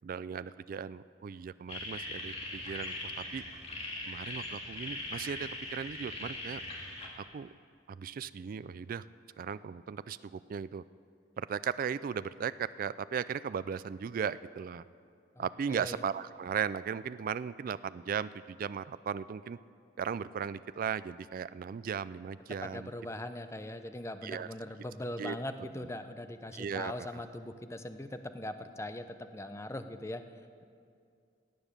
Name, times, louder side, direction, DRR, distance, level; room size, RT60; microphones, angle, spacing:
voice 1, 0.0-3.4 4.1-6.6 7.2-7.5 7.9-9.0 9.4-10.8 11.4-14.8 15.4-19.6 20.0-22.9 24.2-24.5 25.2-25.4 26.5-27.2, right 7 dB, 50° right, 15 dB, 0.3 m, -37 dB
sound 1, 1.7-7.1, left 2 dB, 35° left, 2.1 m, -40 dB
voice 2, 15.4-16.0 22.6-30.2, left 1 dB, 15° left, 9 dB, 0.6 m, -41 dB
17.5 x 9.1 x 6.7 m, 2.3 s
head